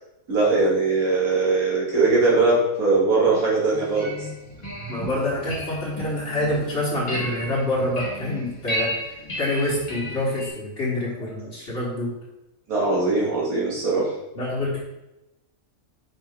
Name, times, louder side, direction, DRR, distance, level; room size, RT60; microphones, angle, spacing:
voice 1, 0.3-4.1 12.7-14.1, right 3 dB, 85° right, -6 dB, 2.4 m, -20 dB
sound 1, 3.7-10.5, equal, 30° left, 1.5 m, -33 dB
voice 2, 4.9-12.1 14.4-14.8, left 1 dB, 50° left, -8 dB, 1.7 m, -26 dB
5.4 x 5.2 x 3.5 m, 0.95 s
omnidirectional pair, 1.5 m